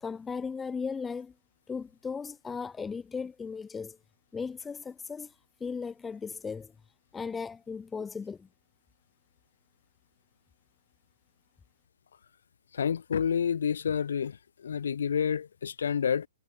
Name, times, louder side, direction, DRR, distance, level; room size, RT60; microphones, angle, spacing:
voice 1, 0.0-1.3 1.7-4.0 4.3-5.3 5.6-6.7 7.1-8.5, left 5 dB, 10° left, 1.8 m, -36 dB
voice 2, 12.7-16.3, left 7 dB, 60° left, 3.0 m, -29 dB
figure-of-eight pair, 120°, 0 cm